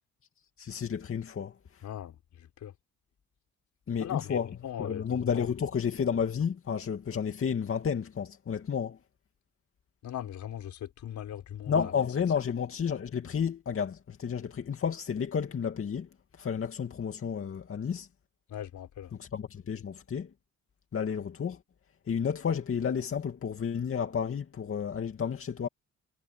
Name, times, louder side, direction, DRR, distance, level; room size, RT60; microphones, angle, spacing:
voice 1, 0.6-1.8 3.9-9.0 11.7-16.1 16.4-18.1 19.1-20.3 20.9-21.6 22.1-25.7, left 7 dB, 45° left, 2.5 m, -31 dB
voice 2, 1.8-2.1 2.6-2.7 4.0-5.0 5.4-5.5 10.0-11.9 18.5-19.1, left 10 dB, 70° left, 4.4 m, -39 dB
cardioid pair, 90°, 30 cm